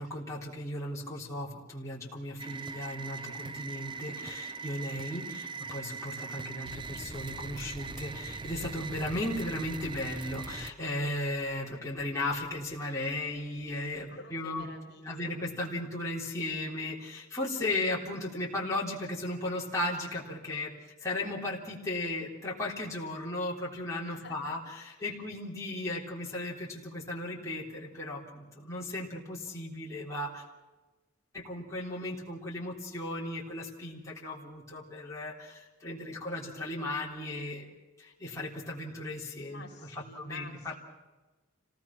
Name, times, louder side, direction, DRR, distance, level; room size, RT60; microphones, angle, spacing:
voice 1, 0.0-14.7 15.0-20.7 21.0-30.4 31.3-39.6 39.9-40.8, left 1 dB, 15° left, -5 dB, 3.6 m, -36 dB
sound 1, 2.4-10.7, right 4 dB, 25° right, 0.6 m, -40 dB
voice 2, 14.1-15.3 24.1-24.5 25.0-25.2 39.4-40.8, left 3 dB, 55° left, 2 dB, 3.5 m, -49 dB
27.0 x 18.0 x 6.0 m, 1.2 s
head